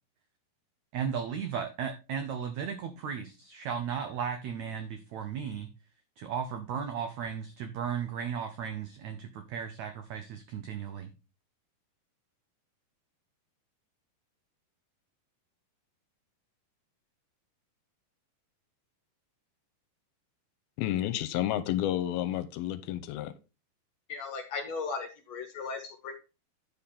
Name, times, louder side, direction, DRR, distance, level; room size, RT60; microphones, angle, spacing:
voice 1, 0.9-5.7 6.2-11.1, right 7 dB, 85° right, 1.6 m, -35 dB
voice 2, 20.8-23.3, left 12 dB, 85° left, 2.4 m, -30 dB
voice 3, 24.1-26.1, left 4 dB, 65° left, 1.8 m, -37 dB
10.0 x 5.4 x 4.2 m
omnidirectional pair, 4.4 m